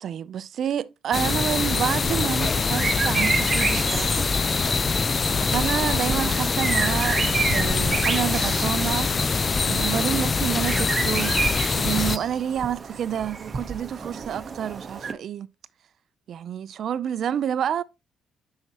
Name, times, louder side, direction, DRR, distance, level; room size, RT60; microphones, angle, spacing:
voice 1, 0.0-4.2 5.4-7.2 7.5-9.1 9.7-11.4 11.8-15.5 16.3-17.8, right 9 dB, 65° right, 0.5 m, -28 dB
sound 1, 1.1-12.2, left 4 dB, 35° left, 0.4 m, -24 dB
sound 2, 2.1-15.1, right 5 dB, 40° right, 0.9 m, -31 dB
sound 3, 5.6-13.4, right 2 dB, 15° right, 2.8 m, -51 dB
7.0 x 5.8 x 2.9 m
cardioid pair, 90°, 0 cm